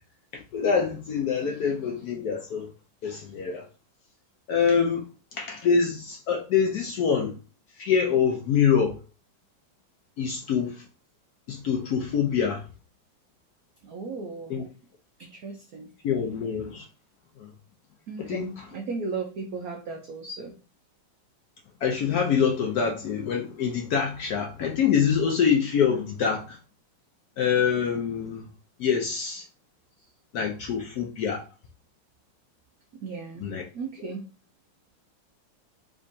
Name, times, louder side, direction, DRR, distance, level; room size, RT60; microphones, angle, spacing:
voice 1, 0.3-2.7 3.0-3.6 4.5-5.1 5.4-7.3 7.8-9.0 10.2-10.8 11.5-12.6 14.5-14.6 16.0-16.8 17.4-17.5 18.2-18.6 21.8-26.6 27.4-28.5 28.8-29.4 30.3-31.4 33.4-33.7, left 7 dB, 70° left, 0.9 m, -25 dB
voice 2, 13.8-14.6 15.2-15.9 18.1-20.5 33.0-33.5 33.7-34.2, right 4 dB, 90° right, 0.8 m, -36 dB
3.6 x 3.3 x 2.6 m
omnidirectional pair, 2.2 m